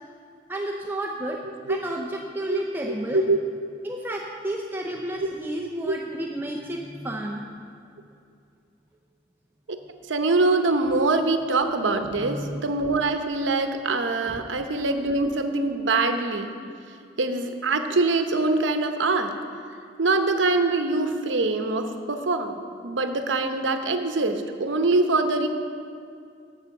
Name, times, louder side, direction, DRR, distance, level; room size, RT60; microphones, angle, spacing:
voice 1, 0.5-1.4 1.7-3.3 3.8-7.5 12.2-12.6 14.3-14.4, right 1 dB, 10° right, 0 dB, 0.6 m, -31 dB
voice 2, 5.6-6.0 9.7-9.8 10.1-16.5 17.2-19.3 20.0-25.5, right 3 dB, 75° right, 7 dB, 0.8 m, -24 dB
9.1 x 7.0 x 7.1 m, 2.4 s
head